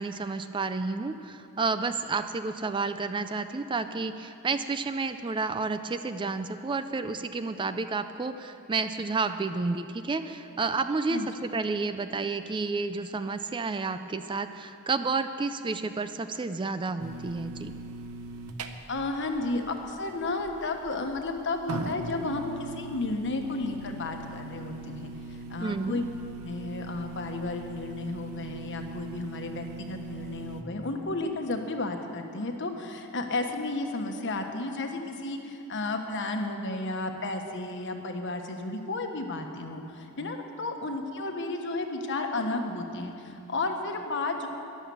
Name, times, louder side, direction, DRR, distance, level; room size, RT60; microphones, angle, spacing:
voice 1, 0.0-17.7 25.6-26.0, right 4 dB, 20° right, 10 dB, 0.4 m, -31 dB
sound 1, 17.0-30.6, right 2 dB, 80° right, 0.8 m, -41 dB
voice 2, 18.9-26.0 26.4-44.5, left 2 dB, 55° left, 4 dB, 1.2 m, -33 dB
14.0 x 11.0 x 7.0 m, 2.9 s
head